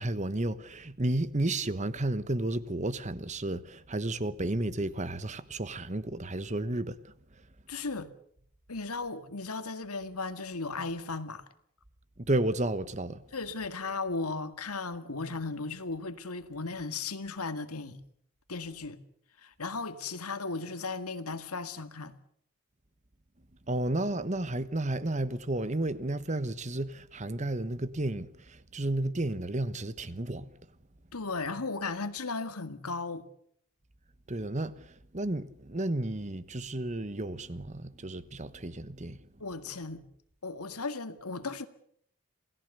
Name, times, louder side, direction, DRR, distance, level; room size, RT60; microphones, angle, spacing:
voice 1, 0.0-7.0 12.2-13.2 23.7-30.5 34.3-34.7 35.1-39.2, right 1 dB, 30° right, 1.2 m, -32 dB
voice 2, 7.7-8.1 8.7-11.4 13.3-18.0 18.5-19.0 19.4-22.1 31.1-33.2 39.4-40.0 40.4-41.7, left 3 dB, 85° left, 2.0 m, -36 dB
28.0 x 18.0 x 6.8 m
head